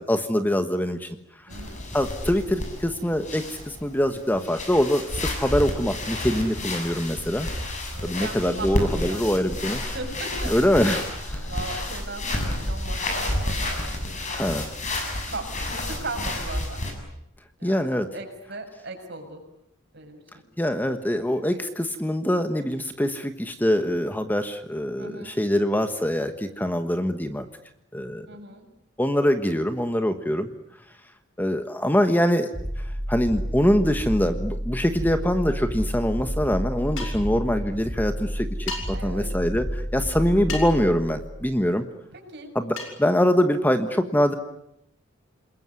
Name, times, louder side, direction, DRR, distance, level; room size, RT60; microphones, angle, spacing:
voice 1, 0.1-1.1 1.9-7.5 8.0-9.8 10.5-11.4 14.3-14.7 17.6-18.1 20.6-27.5 27.9-28.3 29.0-30.5 31.4-32.5 33.1-41.8 42.5-44.3, equal, 10° left, 8 dB, 1.4 m, -24 dB
sound 1, 1.5-16.9, left 1 dB, 40° left, 7.2 m, -30 dB
voice 2, 1.5-1.8 6.3-6.7 7.9-9.2 9.9-10.6 11.4-14.4 15.3-16.8 17.6-19.4 19.9-20.2 25.0-25.4 28.3-28.6 38.9-39.3 42.1-42.5, right 2 dB, 55° right, 4 dB, 6.8 m, -38 dB
sound 2, 32.5-41.6, equal, 10° right, 1.7 m, -31 dB
sound 3, 37.0-37.3 38.7-38.8 40.5-40.8 42.8-43.0, left 3 dB, 75° left, 7.5 m, -33 dB
28.0 x 21.5 x 9.7 m, 0.78 s
head